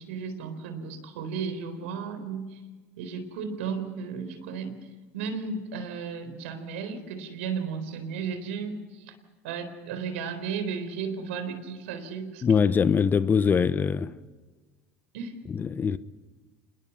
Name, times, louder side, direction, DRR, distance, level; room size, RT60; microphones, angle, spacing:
voice 1, 0.0-2.6 3.0-4.7 5.1-9.1 9.4-12.4 15.1-15.4, right 6 dB, 80° right, 4.0 m, -34 dB
voice 2, 12.4-14.1 15.5-16.0, left 6 dB, 30° left, 0.9 m, -23 dB
27.0 x 20.5 x 5.6 m
hypercardioid pair, 90°, 7 cm